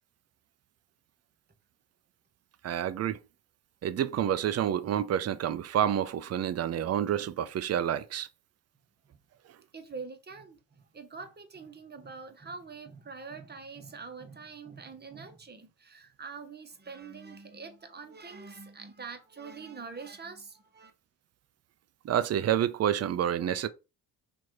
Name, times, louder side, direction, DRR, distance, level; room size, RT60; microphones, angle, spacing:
voice 1, 2.6-3.2 3.8-8.3 22.0-23.7, right 10 dB, 40° right, 0.5 m, -28 dB
voice 2, 9.7-20.9, right 4 dB, 25° right, 1.0 m, -45 dB
3.0 x 2.6 x 4.4 m
supercardioid pair, 55°, 40 cm